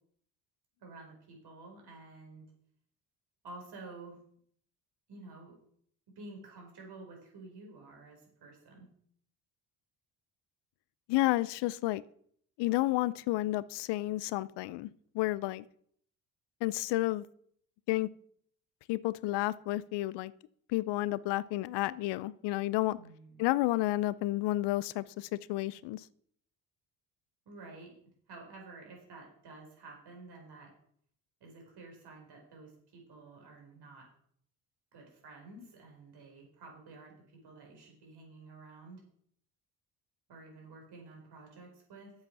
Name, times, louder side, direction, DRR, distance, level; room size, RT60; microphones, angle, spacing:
voice 1, 0.8-2.4 3.4-4.2 5.1-5.6 6.2-8.9 22.9-23.4 27.4-27.9 28.3-30.7 31.4-34.1 34.9-37.1 37.4-39.0 40.3-42.1, right 3 dB, 60° right, 1 dB, 4.7 m, -51 dB
voice 2, 11.1-12.0 12.6-14.9 15.1-15.6 16.6-17.3 17.9-18.1 18.9-20.3 20.7-23.0 23.4-26.0, left 17 dB, 65° left, 20 dB, 0.6 m, -31 dB
8.1 x 7.8 x 6.0 m, 0.64 s
hypercardioid pair, 60°, 45 cm